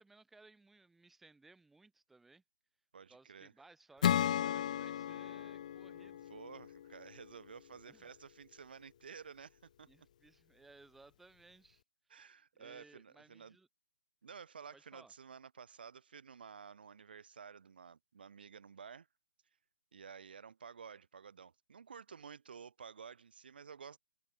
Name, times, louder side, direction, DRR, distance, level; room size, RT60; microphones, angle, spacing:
voice 1, 0.0-2.4 3.1-6.3 7.9-8.1 9.9-11.8 12.6-13.7 14.7-15.1, right 3 dB, 5° right, 3.3 m, -62 dB
voice 2, 2.9-3.5 5.9-10.1 12.1-13.6 14.2-19.1 19.9-24.0, right 6 dB, 65° right, 2.4 m, -52 dB
Acoustic guitar / Strum, 4.0-7.5, left 10 dB, 40° left, 1.1 m, -35 dB
hypercardioid pair, 160°, 6 cm